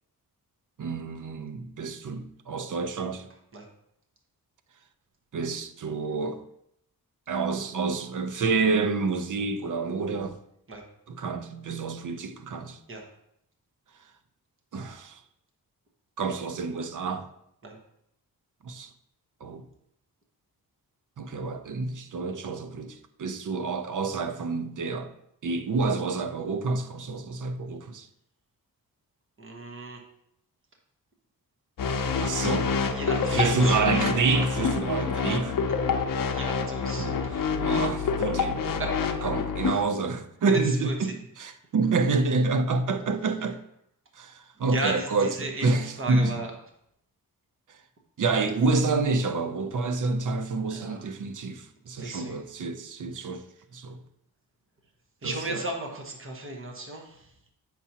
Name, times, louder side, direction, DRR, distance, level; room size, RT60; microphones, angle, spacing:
voice 1, 0.8-3.3 5.3-6.5 7.3-10.4 11.1-12.8 14.7-15.2 16.2-17.3 18.6-18.9 19.4-19.6 21.2-25.1 25.4-28.1 32.2-32.8 33.3-35.6 37.0-37.2 37.6-38.6 39.2-41.1 41.4-43.6 44.2-46.4 48.2-53.4 53.7-54.0 55.2-55.6, right 4 dB, 55° right, 0.6 m, -28 dB
voice 2, 29.4-30.0 32.9-33.8 36.3-37.5 38.8-39.1 39.6-39.8 40.5-41.1 44.6-46.5 50.7-51.0 52.0-52.4 53.2-53.3 55.2-57.3, right 2 dB, 35° right, 1.1 m, -35 dB
sound 1, 31.8-39.7, left 5 dB, 60° left, 0.7 m, -27 dB
8.1 x 5.9 x 2.8 m
wide cardioid pair, 125°, 37 cm